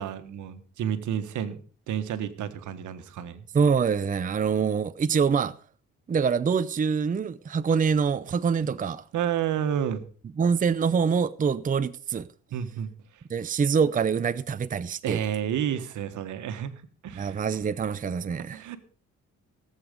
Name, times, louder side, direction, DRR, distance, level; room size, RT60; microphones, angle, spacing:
voice 1, 0.0-3.4 8.6-8.7 9.1-10.0 12.5-12.9 15.0-16.7 17.0-17.4 18.5-18.8, right 9 dB, 75° right, 1.5 m, -30 dB
voice 2, 3.5-5.5 6.1-9.0 10.4-12.3 13.3-15.2 17.1-18.6, right 6 dB, 25° right, 0.6 m, -25 dB
17.0 x 8.0 x 5.3 m
cardioid pair, 90°, 30 cm